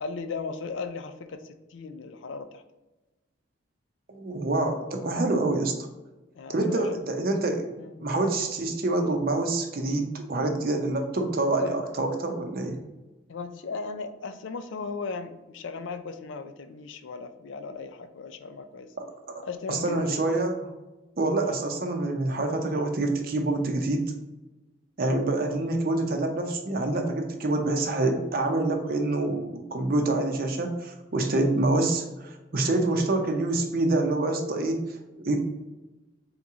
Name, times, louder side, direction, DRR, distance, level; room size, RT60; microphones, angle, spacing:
voice 1, 0.0-2.6 6.3-7.0 7.8-8.0 11.6-11.8 13.3-18.9 19.4-20.3 21.4-21.6, left 4 dB, 80° left, 9 dB, 0.4 m, -36 dB
voice 2, 4.1-5.9 6.5-12.8 19.0-19.1 19.3-19.4 19.7-20.7 21.2-24.1 25.0-34.8 35.2-35.4, right 2 dB, 50° right, 4 dB, 0.7 m, -26 dB
3.8 x 3.0 x 3.6 m, 1.1 s
head